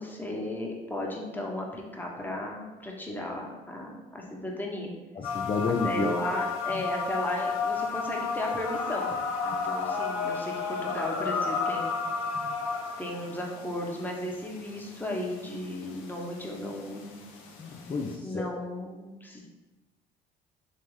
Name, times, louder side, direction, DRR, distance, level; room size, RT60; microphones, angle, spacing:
voice 1, 0.0-4.9 5.7-9.1 9.4-12.0 13.0-17.2 18.2-19.5, left 1 dB, 10° left, -1 dB, 0.9 m, -35 dB
sound 1, 5.2-18.2, left 5 dB, 80° left, 0.5 m, -33 dB
voice 2, 5.2-6.1 17.6-18.4, left 4 dB, 25° left, 2 dB, 0.4 m, -30 dB
3.6 x 2.9 x 3.1 m, 1.1 s
hypercardioid pair, 60°, 20 cm